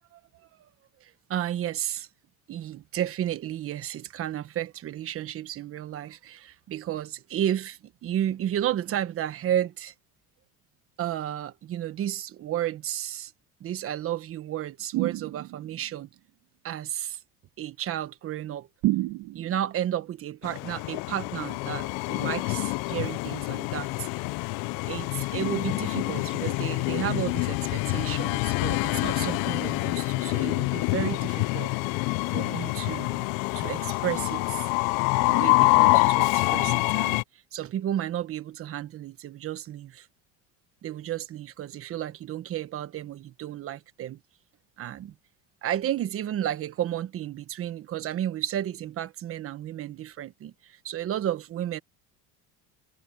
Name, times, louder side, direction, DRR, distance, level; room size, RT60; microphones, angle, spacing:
voice 1, 1.0-2.1 2.5-9.9 11.0-13.3 13.6-16.1 16.6-17.2 17.6-18.7 19.3-24.1 24.9-31.7 32.3-33.2 33.5-34.7 35.2-40.1 40.8-44.2 44.8-45.1 45.6-51.8, right 11 dB, 40° right, 1.3 m, -32 dB
sound 1, 14.9-15.8 18.8-19.7, right 18 dB, 70° right, 2.1 m, -29 dB
Train, 20.4-37.2, left 27 dB, 70° left, 0.5 m, -26 dB
cardioid pair, 150°, 35 cm